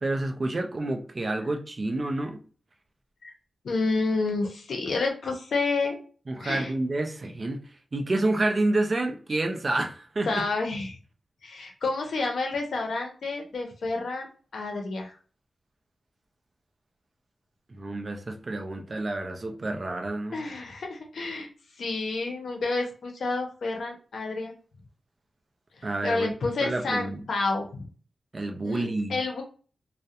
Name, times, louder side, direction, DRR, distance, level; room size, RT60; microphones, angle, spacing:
voice 1, 0.0-2.4 6.3-7.6 7.9-10.4 17.7-20.4 25.8-26.3 26.6-27.3 28.3-29.2, right 2 dB, 35° right, 0.4 m, -29 dB
voice 2, 3.6-6.0 6.4-6.7 10.2-11.0 11.4-14.3 14.5-15.1 20.3-21.5 21.8-24.5 26.0-27.9 28.6-29.4, left 3 dB, 80° left, 0.6 m, -29 dB
2.3 x 2.0 x 2.7 m
wide cardioid pair, 150°, 0 cm